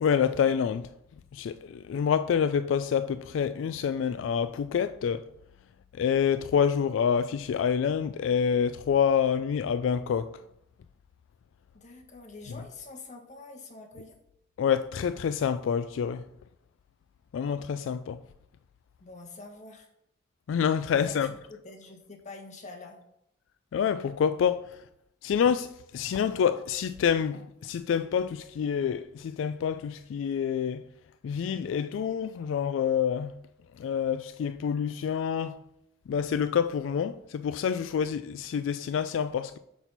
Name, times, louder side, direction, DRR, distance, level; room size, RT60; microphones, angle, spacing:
voice 1, 0.0-0.9 1.3-5.2 6.0-10.3 14.6-16.2 17.3-18.2 20.5-21.3 23.7-24.7 25.2-25.7 25.9-30.8 31.2-33.3 33.8-35.6 36.1-39.6, left 7 dB, 85° left, 0.3 m, -27 dB
voice 2, 11.7-14.2 19.0-19.9 20.9-23.0, left 3 dB, 40° left, 1.2 m, -46 dB
6.0 x 5.9 x 4.0 m
head